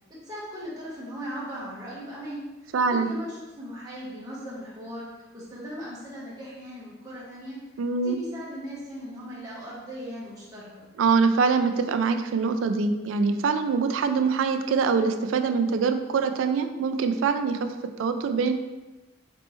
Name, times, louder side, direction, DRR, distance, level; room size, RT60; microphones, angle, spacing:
voice 1, 0.1-5.0 5.3-7.6 8.0-10.9, equal, 20° right, -8 dB, 1.0 m, -38 dB
voice 2, 2.7-3.1 7.8-8.2 11.0-17.6 18.0-18.5, right 5 dB, 80° right, 7 dB, 0.3 m, -24 dB
4.2 x 3.2 x 3.0 m, 1.1 s
head